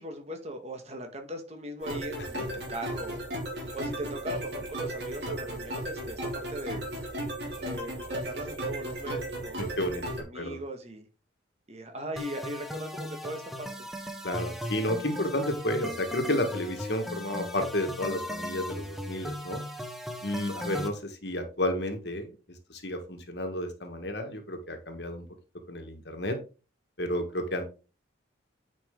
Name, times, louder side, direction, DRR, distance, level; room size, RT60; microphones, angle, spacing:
voice 1, 0.0-3.2 3.6-6.8 7.6-11.1 11.7-13.9, right 1 dB, 35° right, 1.5 m, -39 dB
sound 1, 1.8-10.2, right 1 dB, 55° right, 3.1 m, -35 dB
voice 2, 9.8-10.6 14.2-19.6 20.2-22.3 22.7-25.2 25.7-26.4 27.0-27.6, left 1 dB, 55° left, 1.5 m, -31 dB
sound 2, 12.2-20.9, left 1 dB, ahead, 1.0 m, -38 dB
9.8 x 5.2 x 3.7 m
head